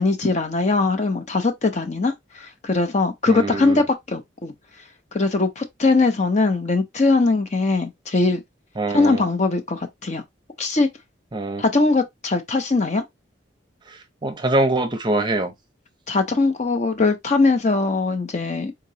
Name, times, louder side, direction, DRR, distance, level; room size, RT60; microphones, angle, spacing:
voice 1, 0.0-4.5 5.1-8.4 8.9-10.2 10.6-10.9 11.6-13.0 16.1-18.7, left 3 dB, 35° left, 0.6 m, -21 dB
voice 2, 3.3-3.8 8.8-9.2 11.3-11.6 14.2-15.5, right 2 dB, 25° right, 0.6 m, -23 dB
3.8 x 2.9 x 2.7 m
head